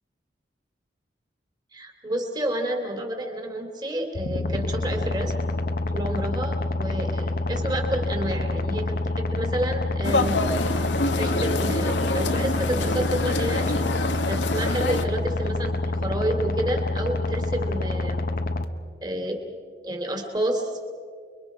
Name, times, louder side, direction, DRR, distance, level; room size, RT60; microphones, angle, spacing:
voice 1, 1.7-5.3 5.9-10.4 11.2-13.9 14.3-18.2 19.0-19.4 19.8-20.7, right 1 dB, 25° right, 3 dB, 2.8 m, -29 dB
sound 1, 4.1-18.6, left 2 dB, 55° left, 1.1 m, -27 dB
sound 2, 10.0-15.0, left 2 dB, 85° left, 1.4 m, -26 dB
29.0 x 23.0 x 5.0 m, 2.1 s
head